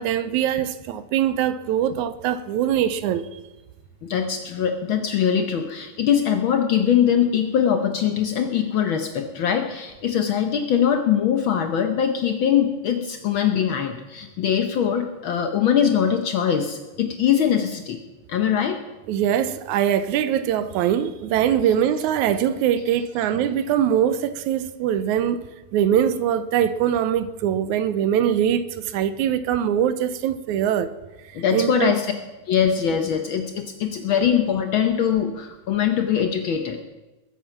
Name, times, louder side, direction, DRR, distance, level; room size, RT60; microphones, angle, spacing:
voice 1, 0.0-3.3 19.1-25.4 25.7-30.9 31.5-31.9, right 9 dB, 80° right, 2.1 m, -22 dB
voice 2, 4.0-18.0 18.3-18.8 31.3-32.1 32.5-36.8, left 8 dB, 85° left, 1.1 m, -22 dB
21.0 x 8.3 x 5.8 m
omnidirectional pair, 3.5 m